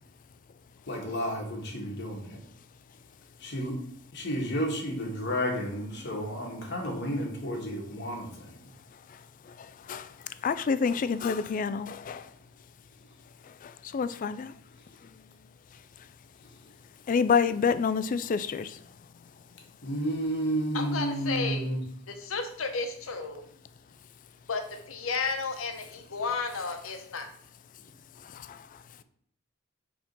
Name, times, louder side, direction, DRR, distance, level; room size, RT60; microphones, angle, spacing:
voice 1, 0.9-2.4 3.4-3.8 4.1-8.5 19.8-21.8, equal, 55° left, 1.5 m, -31 dB
voice 2, 9.5-10.1 10.4-12.3 13.5-14.5 17.1-18.8 28.2-28.7, left 6 dB, 40° left, 0.3 m, -28 dB
voice 3, 20.7-21.6 22.1-23.4 24.5-24.6 24.9-27.3, left 4 dB, 85° left, 0.9 m, -32 dB
4.8 x 3.7 x 5.3 m
head